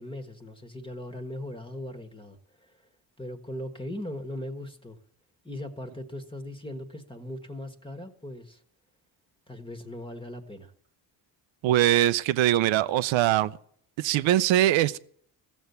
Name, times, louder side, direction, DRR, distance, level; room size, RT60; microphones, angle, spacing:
voice 1, 0.0-2.8 3.2-5.0 5.4-8.6 9.5-10.7, left 1 dB, 10° left, 1.4 m, -39 dB
voice 2, 11.6-13.5 14.0-15.0, right 13 dB, 85° right, 0.6 m, -22 dB
15.0 x 7.1 x 8.0 m
cardioid pair, 80°, 44 cm